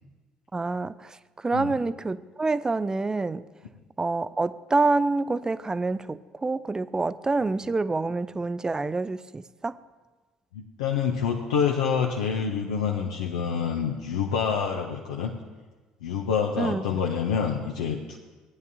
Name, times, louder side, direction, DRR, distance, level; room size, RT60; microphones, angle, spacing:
voice 1, 0.5-3.5 4.0-9.8 16.6-17.0, right 3 dB, 20° right, 17 dB, 0.3 m, -27 dB
voice 2, 10.5-15.3 16.0-18.2, left 7 dB, 75° left, 0 dB, 0.6 m, -27 dB
16.5 x 9.5 x 2.7 m, 1.3 s
hypercardioid pair, 55°, 3 cm